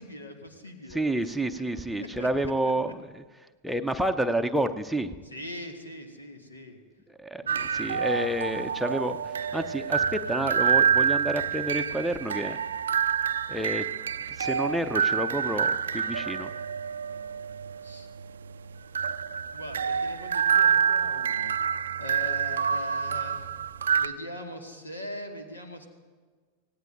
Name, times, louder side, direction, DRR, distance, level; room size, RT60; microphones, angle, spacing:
voice 1, 0.0-2.7 5.2-6.8 7.4-7.6 17.8-18.1 19.5-21.5 22.0-23.5 24.0-25.9, left 1 dB, 80° left, 4 dB, 1.7 m, -41 dB
voice 2, 0.9-2.9 3.6-5.1 7.2-12.6 13.5-13.8 14.4-16.5, right 1 dB, ahead, 5 dB, 0.7 m, -29 dB
sound 1, 7.5-24.1, right 7 dB, 70° right, 0.4 m, -27 dB
25.0 x 18.0 x 2.6 m, 1.4 s
figure-of-eight pair, 90°, 0 cm